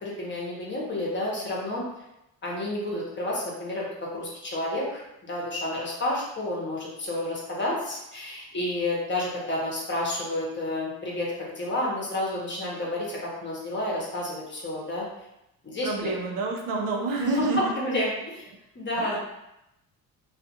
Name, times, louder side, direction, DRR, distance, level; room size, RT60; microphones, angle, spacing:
voice 1, 0.0-1.8 2.4-5.0 5.3-15.1 15.6-16.1 17.2-18.4 18.7-19.2, left 1 dB, 30° left, -4 dB, 0.9 m, -30 dB
voice 2, 15.8-17.6 19.0-19.2, right 2 dB, 65° right, 1 dB, 0.7 m, -28 dB
2.4 x 2.4 x 2.7 m, 0.87 s
cardioid pair, 90°, 37 cm